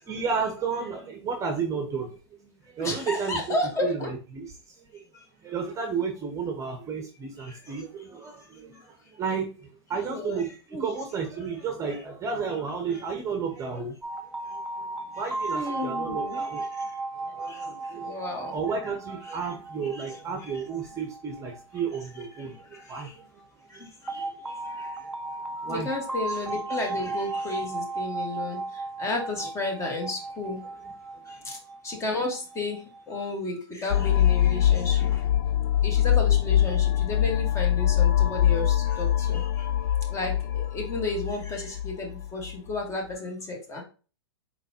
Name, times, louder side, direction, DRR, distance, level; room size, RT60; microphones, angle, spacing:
voice 1, 0.1-3.6 3.8-5.0 5.4-14.0 14.5-14.9 15.1-16.6 17.2-23.3 23.7-24.5 25.6-25.9, right 5 dB, 20° right, 3 dB, 0.9 m, -33 dB
voice 2, 2.8-4.1 7.5-7.6 10.0-10.4 10.7-10.9 12.9-13.0 15.5-16.7 17.5-17.6 18.0-18.5 19.3-19.4 19.9-20.1 20.4-20.6 22.7-23.0 23.7-24.2 24.8-24.9 25.7-28.6 29.0-30.6 31.4-31.6 31.8-32.8 33.1-35.2 35.8-39.7 40.1-43.8, left 2 dB, 20° left, 1 dB, 1.5 m, -32 dB
sound 1, 14.0-22.8 24.1-33.2, right 3 dB, 5° right, 0.5 m, -35 dB
sound 2, 33.9-42.6, left 11 dB, 55° left, 0.4 m, -23 dB
4.5 x 3.8 x 2.8 m, 0.35 s
hypercardioid pair, 115°, 14 cm